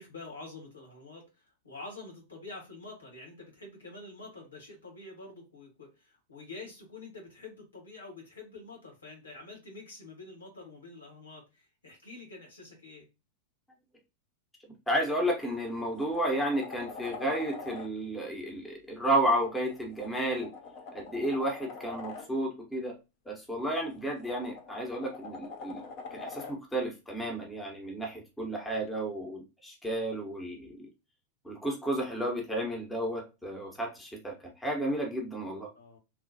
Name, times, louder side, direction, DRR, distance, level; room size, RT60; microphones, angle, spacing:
voice 1, 0.0-13.1 35.7-36.0, left 3 dB, 75° left, 0 dB, 1.4 m, -47 dB
voice 2, 14.9-20.5 20.9-22.9 23.3-25.8 26.1-30.9 31.4-35.7, right 1 dB, 5° left, 0 dB, 0.9 m, -32 dB
sound 1, 15.0-15.2 15.6-17.9 19.5-22.3 23.8-26.6 28.9-29.0, left 4 dB, 40° left, 0.7 m, -44 dB
3.1 x 2.4 x 2.6 m, 0.26 s
figure-of-eight pair, 90°, 0 cm